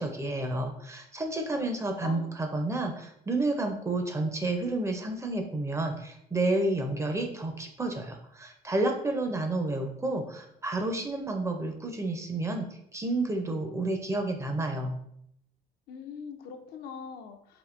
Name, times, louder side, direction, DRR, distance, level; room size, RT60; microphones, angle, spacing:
voice 1, 0.0-12.7 12.9-15.0, right 2 dB, 15° right, 4 dB, 0.4 m, -30 dB
voice 2, 15.9-17.6, left 6 dB, 70° left, 6 dB, 0.4 m, -42 dB
3.5 x 2.5 x 2.4 m, 0.73 s
cardioid pair, 110°, 17 cm